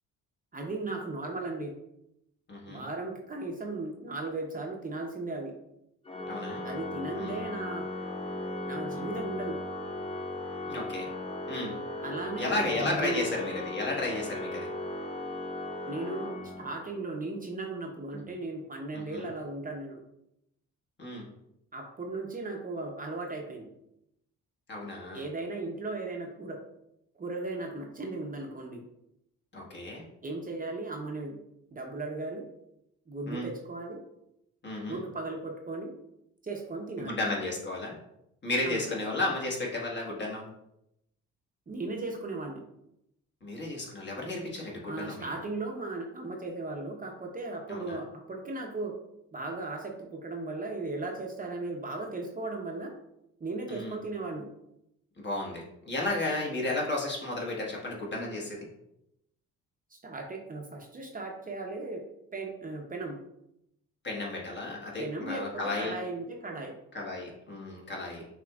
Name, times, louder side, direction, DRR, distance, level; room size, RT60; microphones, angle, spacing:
voice 1, 0.5-1.7 2.7-5.5 6.6-7.9 8.7-9.6 12.0-13.3 15.9-20.0 21.7-23.7 25.1-26.6 27.2-28.8 30.2-31.4 31.7-32.4 33.1-34.0 34.9-35.9 36.4-37.2 38.6-38.8 41.7-42.6 44.9-48.9 49.3-52.9 53.4-54.5 59.9-62.0 62.3-63.2 65.0-66.7, right 2 dB, 30° right, 1 dB, 0.8 m, -36 dB
voice 2, 2.5-2.8 6.3-6.7 7.2-7.4 10.7-11.1 11.5-11.7 12.3-14.7 18.9-19.2 21.0-21.2 24.7-25.2 29.5-30.0 33.3-33.5 34.6-35.0 37.0-38.0 38.4-40.5 43.4-45.2 47.7-48.0 53.7-54.0 55.2-58.7 64.0-65.9 66.9-68.2, left 2 dB, 35° left, -2 dB, 1.4 m, -33 dB
Organ, 6.0-17.0, left 2 dB, 20° left, 0.7 m, -37 dB
6.1 x 2.9 x 2.4 m, 0.81 s
cardioid pair, 90°, 30 cm